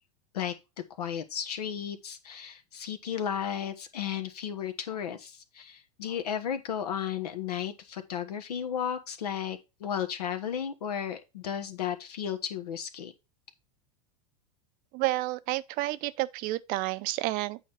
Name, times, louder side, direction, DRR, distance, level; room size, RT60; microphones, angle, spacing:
voice 1, 1.0-13.1, left 8 dB, 75° left, 1.3 m, -34 dB
voice 2, 14.9-17.6, right 18 dB, 45° right, 0.6 m, -30 dB
8.5 x 5.1 x 4.1 m
hypercardioid pair, 100°, 20 cm